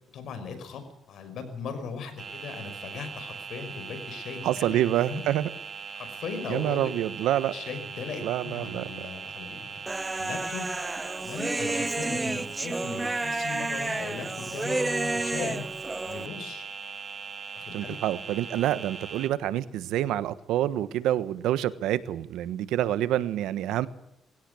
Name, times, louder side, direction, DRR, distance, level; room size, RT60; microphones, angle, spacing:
voice 1, 0.1-4.8 5.1-5.3 5.9-6.9 7.5-10.7 11.2-16.6 17.5-18.0, left 5 dB, 70° left, 9 dB, 5.7 m, -38 dB
sound 1, 2.2-19.3, right 6 dB, 45° right, 2.4 m, -40 dB
voice 2, 4.4-5.5 6.5-7.5 8.2-8.8 17.7-23.9, right 12 dB, 90° right, 15 dB, 1.2 m, -27 dB
Human voice, 9.9-16.3, right 2 dB, 15° right, 0.7 m, -31 dB
20.5 x 17.0 x 8.4 m, 0.83 s
cardioid pair, 90°, 0 cm